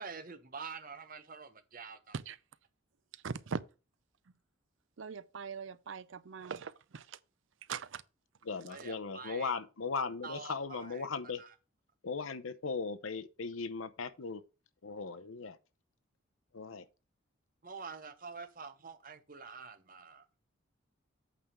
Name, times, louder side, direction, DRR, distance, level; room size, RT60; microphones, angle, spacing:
voice 1, 0.0-2.1 8.7-9.5 10.2-11.1 11.4-11.5 17.6-20.2, right 5 dB, 40° right, 1.0 m, -46 dB
voice 2, 3.2-3.6 5.0-7.2 7.7-8.0, right 5 dB, 70° right, 0.5 m, -41 dB
voice 3, 8.4-11.4 12.0-14.4 14.8-15.6 16.5-16.9, left 4 dB, 80° left, 0.8 m, -38 dB
8.4 x 3.7 x 6.8 m
head